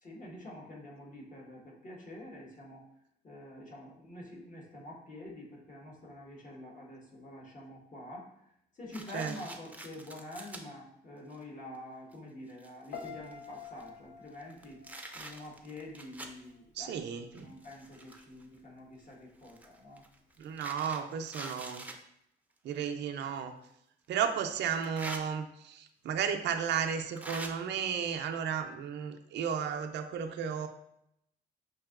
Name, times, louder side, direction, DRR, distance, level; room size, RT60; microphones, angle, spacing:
voice 1, 0.0-2.8 3.2-8.3 8.8-14.8 15.1-17.0 17.4-20.0, left 1 dB, 45° left, -2 dB, 1.4 m, -47 dB
sound 1, 8.9-10.6 11.3-11.4 12.1-12.2 12.5-13.9 14.4-16.4 17.3-18.4 19.4-22.0 23.3-23.4 24.7-25.2 26.3-26.4 27.2-27.5, right 2 dB, 10° right, 0.5 m, -45 dB
Piano, 12.9-16.0 16.3-16.7, left 6 dB, 80° left, 0.7 m, -48 dB
voice 2, 16.7-17.5 20.4-21.9 22.6-23.5 24.1-30.7, right 7 dB, 70° right, 6 dB, 0.5 m, -34 dB
5.2 x 2.7 x 2.4 m, 0.77 s
cardioid pair, 70°, 18 cm